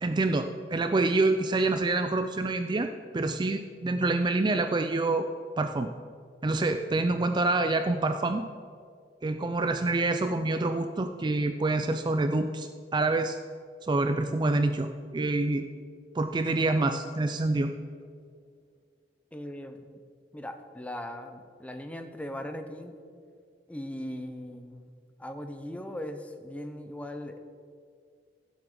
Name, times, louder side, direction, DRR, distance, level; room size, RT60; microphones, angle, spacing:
voice 1, 0.0-5.3 5.6-5.9 6.4-8.5 9.2-13.4 13.8-15.7 16.1-17.7, right 2 dB, 25° right, 8 dB, 0.4 m, -27 dB
voice 2, 19.3-20.0 20.3-23.0 23.7-24.9 25.2-27.4, left 1 dB, 10° left, 7 dB, 0.7 m, -39 dB
16.0 x 7.7 x 3.8 m, 2.2 s
head